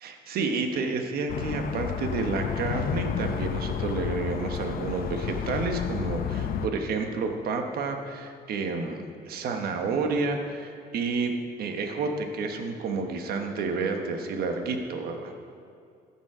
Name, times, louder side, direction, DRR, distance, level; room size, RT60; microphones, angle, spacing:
voice 1, 0.0-15.3, right 4 dB, 65° right, 4 dB, 1.3 m, -30 dB
sound 1, 1.3-6.7, left 8 dB, 60° left, 0.7 m, -31 dB
14.0 x 7.3 x 4.9 m, 2.4 s
cardioid pair, 110°, 17 cm